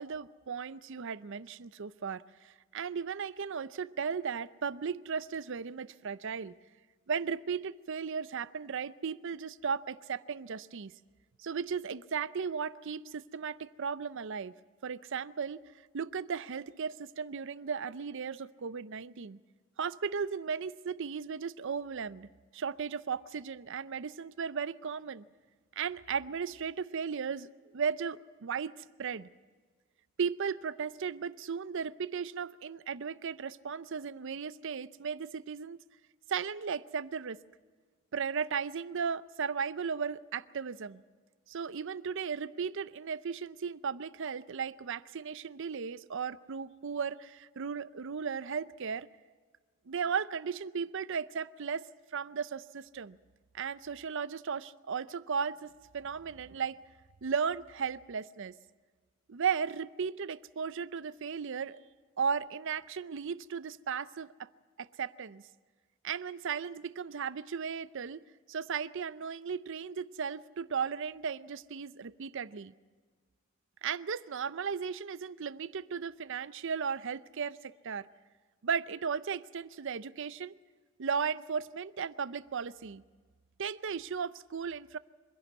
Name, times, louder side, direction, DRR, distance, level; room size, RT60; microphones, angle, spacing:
voice 1, 0.0-6.6 7.1-10.9 11.4-14.6 14.8-15.6 15.9-19.4 19.8-25.2 25.8-27.5 27.7-28.7 29.0-29.3 30.2-35.8 36.3-37.4 38.1-41.0 41.5-49.1 49.9-51.9 52.1-53.2 53.5-56.8 57.2-58.6 59.3-61.8 62.2-64.5 64.8-65.4 66.0-68.2 68.5-72.7 73.8-78.1 78.6-80.6 81.0-83.0 83.6-85.0, right 6 dB, 65° right, 17 dB, 0.6 m, -36 dB
25.5 x 11.5 x 9.3 m, 1.5 s
head